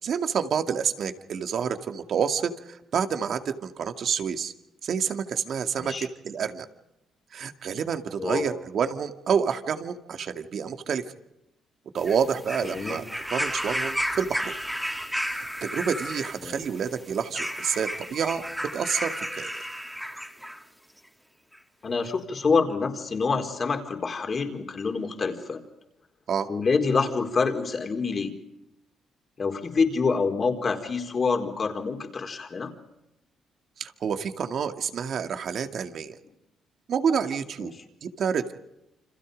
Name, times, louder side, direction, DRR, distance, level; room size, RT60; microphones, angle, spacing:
voice 1, 0.0-4.5 4.8-6.7 7.3-11.0 11.9-14.6 15.3-18.4 18.7-19.6 26.3-26.5 33.8-36.2 36.9-37.7 38.0-38.5, right 7 dB, 60° right, 7 dB, 2.2 m, -28 dB
voice 2, 8.2-8.5 12.7-13.0 16.4-16.6 21.8-25.6 26.5-28.3 29.4-32.7 37.6-37.7, left 4 dB, 40° left, 5 dB, 4.4 m, -26 dB
sound 1, 12.0-20.6 21.5-21.6, equal, ahead, 2.8 m, -33 dB
29.0 x 26.5 x 5.3 m, 0.87 s
cardioid pair, 90°, 0 cm